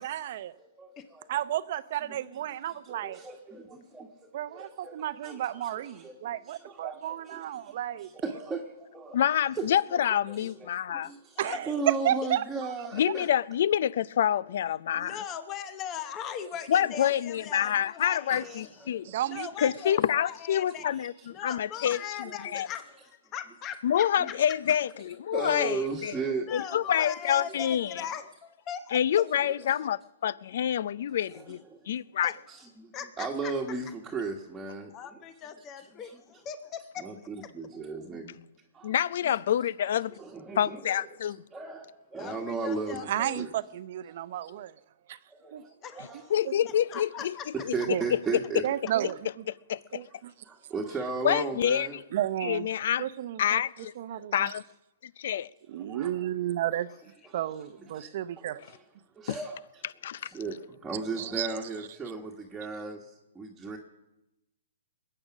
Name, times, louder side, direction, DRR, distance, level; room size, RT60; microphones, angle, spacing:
voice 1, 0.0-0.5 1.3-3.2 4.3-8.1 11.4-12.4 19.0-19.5 43.1-44.7 45.1-45.2 45.5-45.6 46.4-46.5 47.9-48.0 48.6-49.2 49.9-50.3 52.1-52.7 53.0-53.6 54.0-54.5 55.7-56.9 57.3-58.6 61.2-61.5, right 12 dB, 50° right, 0.7 m, -32 dB
voice 2, 0.6-1.3 2.1-2.2 2.8-6.2 6.4-9.2 9.5-11.4 11.7-13.3 16.4-16.5 16.9-17.0 18.3-19.0 20.7-21.3 25.3-26.5 27.5-27.6 29.6-29.7 31.2-31.9 32.5-34.9 36.0-36.2 37.0-38.4 38.7-38.9 39.3-39.4 40.2-41.1 41.5-43.1 43.4-43.5 44.5-44.6 45.3-46.2 47.5-48.6 49.0-49.1 50.4-52.0 55.8-56.1 57.2-57.4 57.9-58.8 59.1-59.8 60.3-63.8, right 4 dB, 10° right, 1.5 m, -36 dB
voice 3, 9.1-11.1 12.9-15.2 16.7-19.1 19.6-22.0 22.5-22.7 23.8-26.1 26.5-28.0 28.9-32.3 38.8-40.2 40.6-41.4 46.3-47.3 47.6-47.7 49.7-50.0 51.2-52.0 52.4-53.1 53.4-53.9 54.3-54.6 55.0-55.5 59.3-59.4 60.0-60.3, left 10 dB, 60° left, 0.4 m, -27 dB
voice 4, 11.4-11.8 14.9-18.7 19.3-20.9 21.3-24.3 26.5-29.0 32.2-32.3 32.9-33.5 34.9-37.0 42.2-43.5 45.8-46.3 46.9-47.6, left 8 dB, 25° left, 0.8 m, -40 dB
21.5 x 8.8 x 6.2 m
hypercardioid pair, 140°, 0 cm